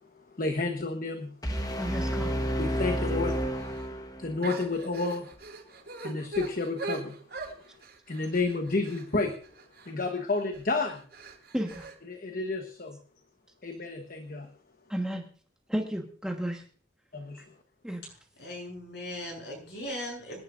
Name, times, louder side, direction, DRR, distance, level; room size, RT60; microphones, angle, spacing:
voice 1, 0.1-1.3 2.6-3.4 4.2-5.3 6.0-7.2 8.1-9.4 9.9-11.0 12.1-13.0 13.6-14.5 17.1-17.4, left 3 dB, 50° left, 5 dB, 1.1 m, -30 dB
sound 1, 1.4-4.4, equal, 20° left, 1.2 m, -30 dB
voice 2, 1.8-2.4 11.5-11.9 14.9-15.2 15.7-16.6 17.8-18.0, equal, 5° right, 1 dB, 1.4 m, -32 dB
sound 2, 3.6-3.9 4.4-10.1 10.5-10.7 11.1-11.9, right 3 dB, 55° right, 5.4 m, -41 dB
voice 3, 18.4-20.4, left 1 dB, 65° left, 0 dB, 7.9 m, -38 dB
26.5 x 11.0 x 2.5 m, 0.43 s
head